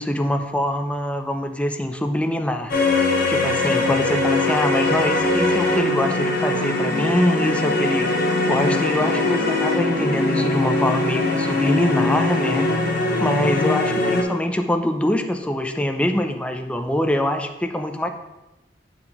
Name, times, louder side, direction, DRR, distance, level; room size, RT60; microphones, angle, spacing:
voice 1, 0.0-2.7 3.3-8.2 8.5-12.7 13.2-18.1, left 1 dB, 5° left, 6 dB, 0.4 m, -24 dB
sound 1, 2.7-14.2, left 2 dB, 55° left, 1.0 m, -21 dB
9.4 x 3.8 x 2.9 m, 1.0 s
head